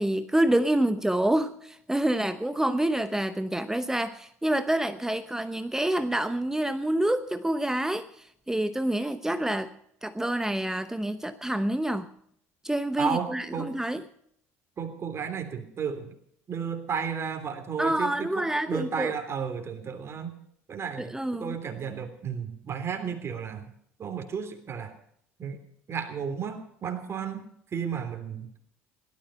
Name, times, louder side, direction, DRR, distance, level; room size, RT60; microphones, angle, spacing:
voice 1, 0.0-9.7 10.0-12.1 12.6-14.0 17.8-19.1 21.0-21.6, right 1 dB, 5° right, 11 dB, 0.9 m, -27 dB
voice 2, 13.0-13.7 14.8-16.1 16.5-20.4 20.7-21.1 21.4-23.7 24.0-24.9 25.4-25.6 25.9-27.5 27.7-28.6, right 7 dB, 35° right, 7 dB, 3.3 m, -33 dB
17.0 x 13.0 x 5.6 m, 0.67 s
hypercardioid pair, 65°, 7 cm